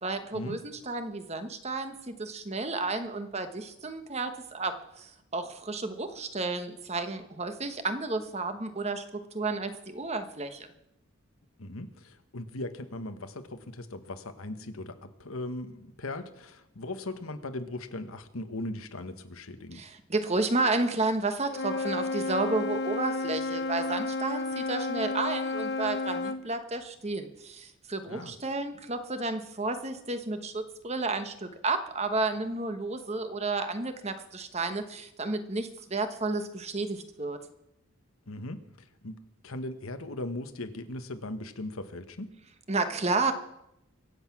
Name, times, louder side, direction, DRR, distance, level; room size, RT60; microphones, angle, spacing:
voice 1, 0.0-10.7 19.7-37.4 42.7-43.3, right 3 dB, 30° right, 8 dB, 1.2 m, -32 dB
voice 2, 11.6-19.8 28.1-28.3 38.3-42.3, left 2 dB, 80° left, 9 dB, 1.3 m, -39 dB
Wind instrument woodwind instrument, 21.5-26.4, left 2 dB, 50° left, 1.0 m, -32 dB
24.0 x 8.1 x 6.1 m, 0.83 s
head